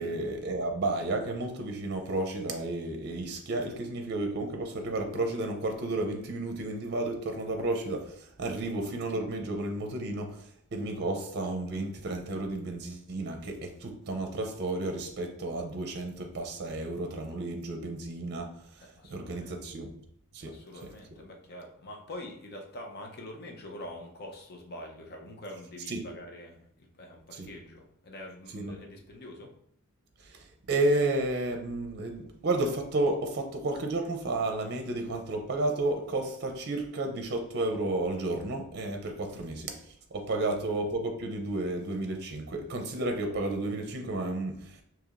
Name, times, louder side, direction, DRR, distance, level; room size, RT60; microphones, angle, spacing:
voice 1, 0.0-18.5 19.1-19.9 20.3-20.5 25.9-26.0 27.3-27.5 28.5-28.7 30.2-39.7 40.1-44.8, right 2 dB, 50° right, 4 dB, 0.6 m, -32 dB
voice 2, 18.8-19.6 20.4-29.5 39.3-39.5 40.4-40.5, left 1 dB, 45° left, 1 dB, 0.7 m, -45 dB
4.7 x 2.9 x 2.5 m, 0.67 s
head